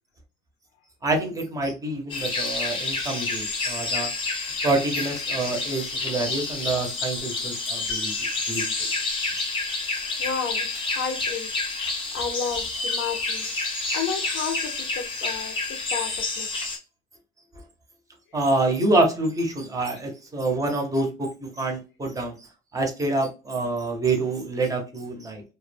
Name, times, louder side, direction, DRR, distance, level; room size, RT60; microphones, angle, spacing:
voice 1, 1.0-4.1 4.6-8.9 18.3-22.5 22.7-25.4, right 2 dB, 15° right, 0.5 m, -27 dB
sound 1, 2.1-16.8, left 3 dB, 25° left, 0.6 m, -29 dB
voice 2, 10.2-11.5 12.1-16.5 18.3-18.4, left 6 dB, 75° left, 0.6 m, -32 dB
2.2 x 2.1 x 3.2 m
cardioid pair, 175°, 21 cm